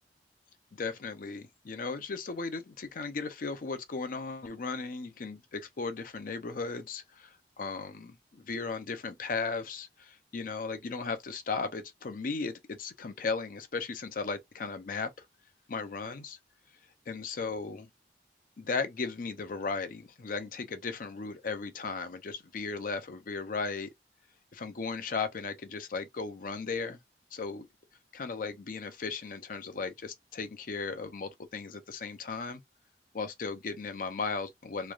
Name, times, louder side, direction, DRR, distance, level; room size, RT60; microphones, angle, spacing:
voice 1, 0.7-15.1 15.7-16.4 17.1-17.9 18.6-23.9 24.5-27.0 27.3-27.7 28.1-32.6 33.1-34.9, left 4 dB, 50° left, 0.5 m, -36 dB
3.1 x 2.3 x 2.3 m
head